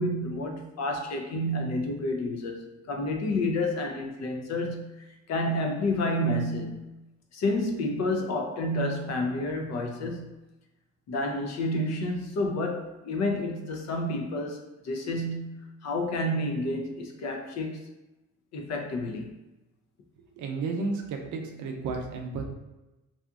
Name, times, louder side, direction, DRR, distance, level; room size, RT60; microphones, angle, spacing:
voice 1, 0.0-6.9 7.3-10.4 11.1-17.9 18.5-19.4, left 1 dB, 60° left, 3 dB, 0.6 m, -30 dB
voice 2, 20.4-22.5, right 4 dB, 75° right, 3 dB, 0.6 m, -32 dB
2.7 x 2.4 x 2.3 m, 1.0 s
cardioid pair, 90°, 30 cm